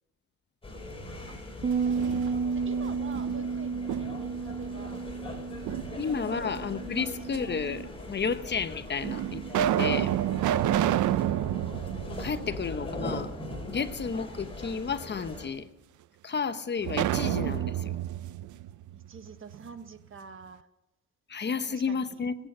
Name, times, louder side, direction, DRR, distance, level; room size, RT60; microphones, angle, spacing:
sound 1, 0.6-15.5, left 1 dB, 20° left, 5.2 m, -41 dB
voice 1, 0.9-1.4 1.8-2.0 2.3-5.0 6.3-6.5 6.9-7.2 18.9-20.7 21.7-22.2, right 5 dB, 45° right, 1.5 m, -47 dB
Bass guitar, 1.6-7.9, right 5 dB, 25° right, 0.7 m, -32 dB
sound 2, 1.7-2.7 3.1-4.4 5.7-6.5 7.3-7.4 8.3-8.4 9.0-13.1 13.4-13.5 16.8-19.6, right 12 dB, 80° right, 0.6 m, -29 dB
voice 2, 6.0-10.1 12.1-13.3 13.7-15.7 16.2-17.9 21.3-22.3, left 5 dB, 35° left, 0.9 m, -32 dB
21.5 x 9.0 x 5.5 m
cardioid pair, 90°, 30 cm